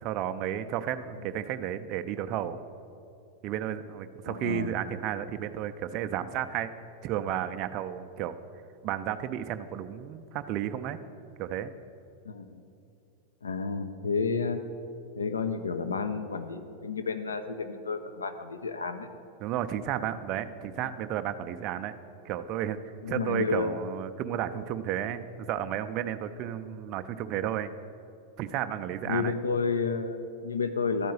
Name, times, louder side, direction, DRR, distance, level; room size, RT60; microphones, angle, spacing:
voice 1, 0.0-2.6 3.4-6.7 7.0-8.4 8.8-11.0 11.4-11.7 19.4-21.9 22.2-22.8 23.1-27.7 28.4-29.3, right 10 dB, 40° right, 9 dB, 0.4 m, -32 dB
voice 2, 4.3-4.7 12.3-12.6 13.4-14.6 15.2-19.1 20.8-20.9 23.0-23.9 29.1-31.1, left 4 dB, 75° left, 8 dB, 0.5 m, -31 dB
11.5 x 4.6 x 7.6 m, 2.6 s
figure-of-eight pair, 90°, 0 cm